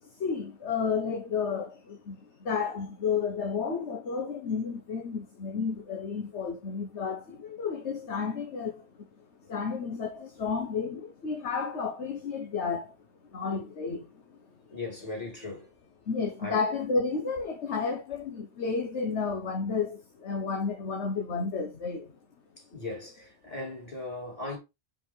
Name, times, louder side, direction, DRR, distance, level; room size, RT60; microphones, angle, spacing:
voice 1, 0.0-9.1 9.4-13.0 13.3-14.4 16.1-22.1, left 5 dB, 80° left, 1.4 m, -32 dB
voice 2, 14.7-15.7 16.4-16.6 22.7-24.6, left 2 dB, 35° left, 3.3 m, -38 dB
5.2 x 5.1 x 4.4 m
omnidirectional pair, 1.1 m